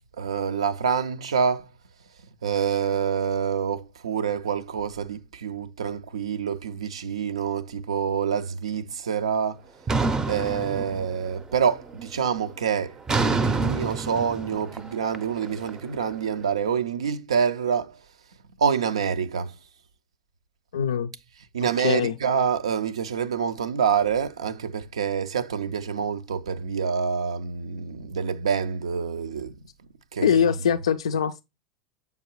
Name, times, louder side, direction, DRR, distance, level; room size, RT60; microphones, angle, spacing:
voice 1, 0.2-1.7 2.4-9.6 10.3-18.0 18.6-19.5 21.5-29.6 30.1-30.3, right 7 dB, 75° right, 0.4 m, -27 dB
sound 1, 9.9-11.4 11.8-12.2 13.1-16.1, right 3 dB, 20° right, 0.5 m, -27 dB
voice 2, 20.7-21.1 21.8-22.1 30.2-31.4, left 8 dB, 75° left, 0.3 m, -22 dB
6.9 x 4.7 x 3.0 m
figure-of-eight pair, 85°, 3 cm